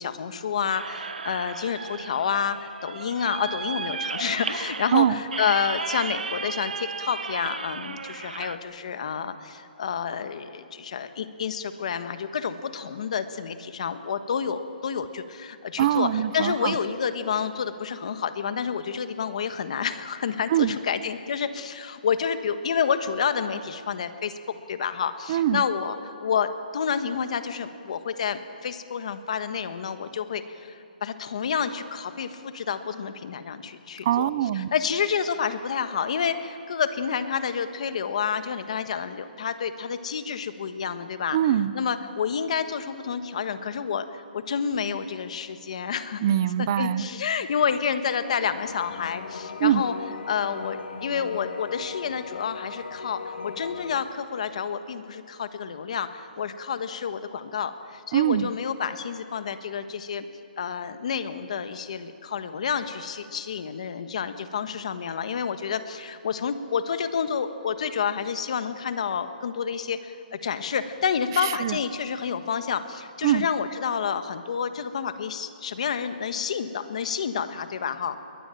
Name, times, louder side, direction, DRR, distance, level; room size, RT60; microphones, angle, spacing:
voice 1, 0.0-24.4 24.7-30.7 31.0-34.3 34.6-41.4 41.7-46.2 46.6-49.9 50.3-60.3 60.6-78.2, left 7 dB, 45° left, 10 dB, 1.4 m, -29 dB
sound 1, 0.7-8.6, right 5 dB, 75° right, 1.2 m, -35 dB
voice 2, 15.8-16.8 20.5-20.8 25.3-25.6 34.0-34.7 41.3-41.7 46.2-47.1 49.6-49.8 58.1-58.5 71.3-71.8 73.2-73.5, right 11 dB, 25° right, 18 dB, 0.5 m, -23 dB
sound 2, 48.6-54.0, left 5 dB, 70° left, 1.8 m, -38 dB
22.0 x 19.5 x 9.0 m, 2.4 s
hypercardioid pair, 175°, 5 cm